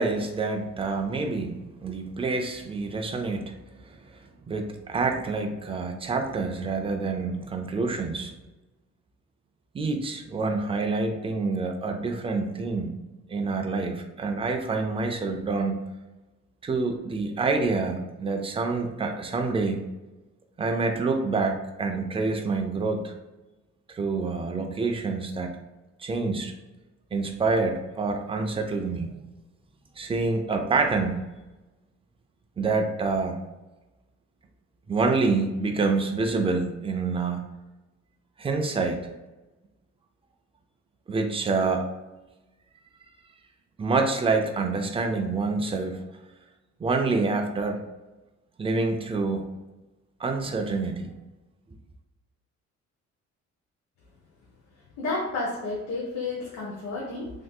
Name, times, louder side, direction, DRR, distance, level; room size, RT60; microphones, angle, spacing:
voice 1, 0.0-3.6 4.4-8.3 9.7-15.8 16.6-19.8 20.6-23.1 23.9-25.6 26.0-26.5 27.1-29.1 30.0-31.2 32.6-33.4 34.9-37.4 38.4-39.0 41.1-41.9 43.8-46.0 46.8-47.8 48.6-49.5 50.2-51.1, right 3 dB, 20° right, 4 dB, 0.3 m, -27 dB
voice 2, 55.0-57.3, left 3 dB, 70° left, -3 dB, 0.8 m, -31 dB
3.5 x 2.6 x 2.2 m, 1.1 s
cardioid pair, 145°, 29 cm